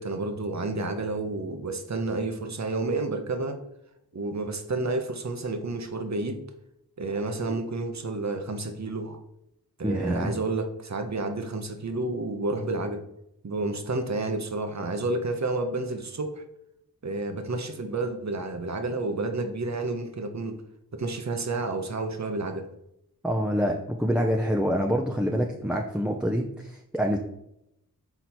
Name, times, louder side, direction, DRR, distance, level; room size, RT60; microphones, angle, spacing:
voice 1, 0.0-3.6 4.1-6.4 7.0-9.2 9.8-13.0 13.4-16.4 17.0-20.6 20.9-22.7, right 2 dB, 45° right, 6 dB, 1.0 m, -30 dB
voice 2, 9.8-10.3 23.2-27.2, equal, 5° right, 1 dB, 0.7 m, -26 dB
6.0 x 4.0 x 4.4 m, 0.82 s
cardioid pair, 40°, 37 cm